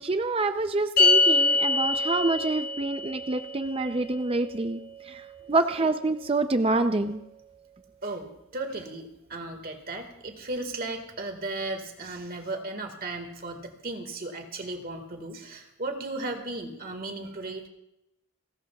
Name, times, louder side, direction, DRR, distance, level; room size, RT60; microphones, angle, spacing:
voice 1, 0.0-4.8 5.1-5.2 5.5-7.2, right 2 dB, 25° right, 8 dB, 0.5 m, -26 dB
sound 1, 1.0-7.5, left 3 dB, 45° left, 6.0 m, -27 dB
voice 2, 8.0-17.6, right 2 dB, 45° right, 5 dB, 1.8 m, -35 dB
30.0 x 13.0 x 2.4 m, 0.86 s
head